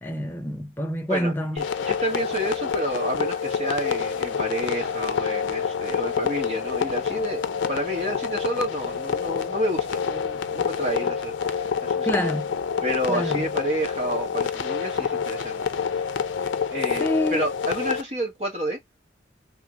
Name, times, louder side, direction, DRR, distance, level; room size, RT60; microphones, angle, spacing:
voice 1, 0.0-1.6 12.0-12.5 13.1-13.5 17.0-17.5, equal, 10° left, 0.6 m, -27 dB
voice 2, 1.1-12.3 12.8-15.6 15.9-16.1 16.7-18.8, right 1 dB, 35° right, 1.2 m, -30 dB
sound 1, 1.6-18.0, left 6 dB, 90° left, 0.5 m, -27 dB
3.1 x 3.0 x 2.4 m
head